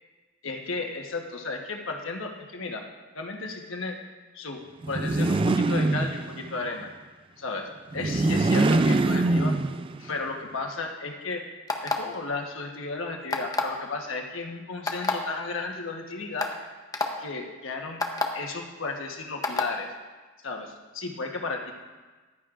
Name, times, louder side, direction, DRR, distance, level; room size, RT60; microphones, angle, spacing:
voice 1, 0.4-2.8 3.1-4.0 4.3-4.6 4.9-6.9 7.4-9.5 10.0-11.4 11.8-16.5 17.2-18.0 18.3-19.9 20.4-21.7, left 3 dB, 85° left, 2 dB, 1.3 m, -34 dB
sound 1, 4.8-6.6 7.9-10.1, right 2 dB, 25° right, 0.3 m, -23 dB
sound 2, 11.7-12.2 13.3-13.8 14.9-15.1 15.9-16.0 16.4-16.5 16.9-17.1 18.0-18.3 19.4-19.7, left 3 dB, 20° left, 0.8 m, -26 dB
14.5 x 11.0 x 2.5 m, 1.3 s
head